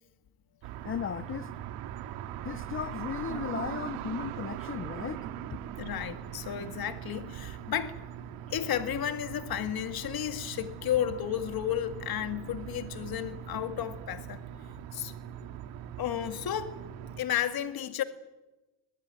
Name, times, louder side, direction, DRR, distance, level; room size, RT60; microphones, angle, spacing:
sound 1, 0.6-17.2, right 10 dB, 80° right, 2.4 m, -41 dB
voice 1, 0.8-1.5 2.4-5.2, left 8 dB, 25° left, 0.8 m, -36 dB
voice 2, 5.8-8.0 8.5-14.4 14.9-15.1 16.0-16.8 17.2-18.0, left 10 dB, 45° left, 2.0 m, -32 dB
23.0 x 19.5 x 9.6 m
cardioid pair, 110°, 49 cm